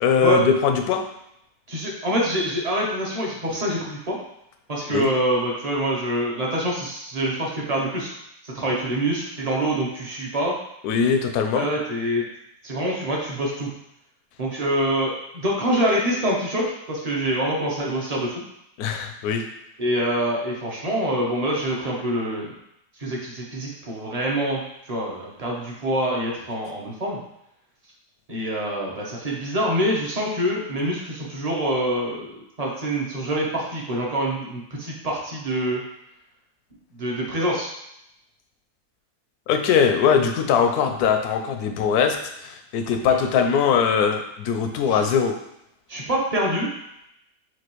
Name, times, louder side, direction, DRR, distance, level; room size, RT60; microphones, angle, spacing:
voice 1, 0.0-1.0 4.9-5.1 10.8-11.7 18.8-19.4 39.5-45.3, left 7 dB, 85° left, 5 dB, 1.1 m, -21 dB
voice 2, 1.7-4.2 4.7-8.1 8.4-10.5 11.5-12.2 12.6-13.7 14.4-18.3 19.8-22.5 23.0-27.2 28.3-32.3 32.6-35.8 36.9-37.7 43.1-43.2 44.9-45.0 45.9-46.7, right 1 dB, 30° right, -3 dB, 0.8 m, -25 dB
5.9 x 2.6 x 3.0 m, 0.81 s
omnidirectional pair, 1.6 m